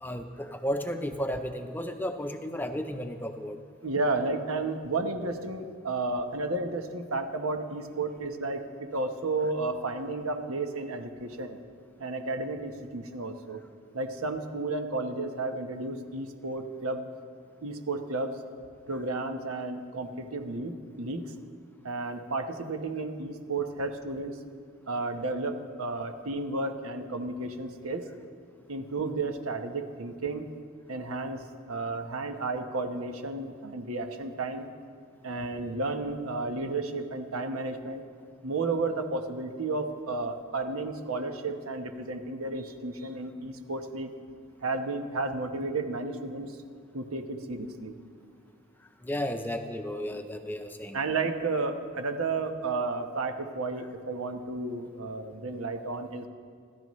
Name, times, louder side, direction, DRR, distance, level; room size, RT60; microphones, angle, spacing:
voice 1, 0.0-3.6 49.0-51.0, equal, 10° left, 6 dB, 0.6 m, -33 dB
voice 2, 3.8-11.6 12.0-13.6 13.9-17.0 17.6-18.4 18.9-21.2 21.8-24.4 24.9-28.1 28.7-30.5 30.9-34.7 35.2-38.0 38.4-44.1 44.6-46.6 46.9-47.9 50.9-56.3, right 3 dB, 90° right, 6 dB, 1.2 m, -32 dB
26.5 x 13.5 x 3.2 m, 2.1 s
head